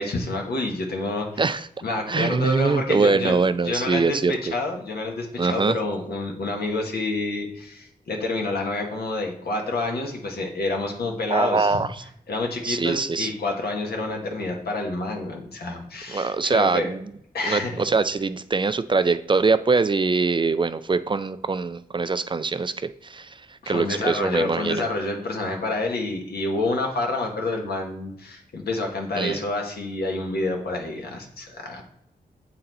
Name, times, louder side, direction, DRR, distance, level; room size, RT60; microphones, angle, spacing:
voice 1, 0.0-1.4 1.8-3.4 3.6-11.8 12.3-16.9 17.3-17.8 23.6-31.8, left 2 dB, 85° left, 1 dB, 1.3 m, -28 dB
voice 2, 1.4-1.7 2.1-4.5 5.4-5.8 11.3-12.0 12.6-13.3 16.1-17.1 17.4-24.9 29.2-29.4, right 4 dB, 30° right, 13 dB, 0.4 m, -23 dB
7.7 x 4.2 x 4.0 m, 0.74 s
cardioid pair, 70°, 16 cm